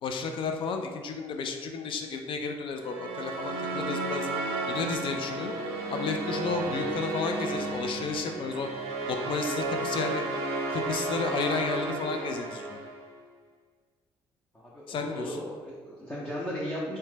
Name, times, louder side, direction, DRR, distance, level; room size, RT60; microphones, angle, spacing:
voice 1, 0.0-4.3 4.7-5.5 5.9-8.7 9.1-10.2 10.7-12.8 14.9-15.4, left 4 dB, 55° left, 4 dB, 0.4 m, -32 dB
sound 1, 2.7-13.1, right 2 dB, 70° right, 0.5 m, -33 dB
voice 2, 14.5-17.0, equal, 15° left, -6 dB, 0.6 m, -36 dB
2.8 x 2.2 x 3.3 m, 1.4 s
supercardioid pair, 70°, 10 cm